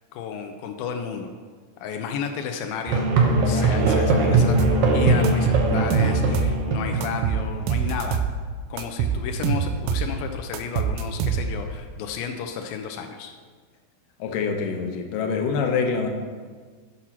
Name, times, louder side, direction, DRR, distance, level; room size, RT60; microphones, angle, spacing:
voice 1, 0.1-1.3 1.8-8.2 8.7-13.3, left 7 dB, 90° left, 4 dB, 2.0 m, -32 dB
Musical instrument, 2.9-7.7, right 2 dB, 70° right, 2.5 m, -21 dB
sound 1, 4.6-4.8 5.2-6.6 7.0-8.4 8.8-10.1 10.5-11.7, right 7 dB, 85° right, 2.2 m, -25 dB
voice 2, 14.2-16.1, left 5 dB, 75° left, 3 dB, 2.1 m, -25 dB
8.2 x 6.0 x 5.7 m, 1.5 s
omnidirectional pair, 4.8 m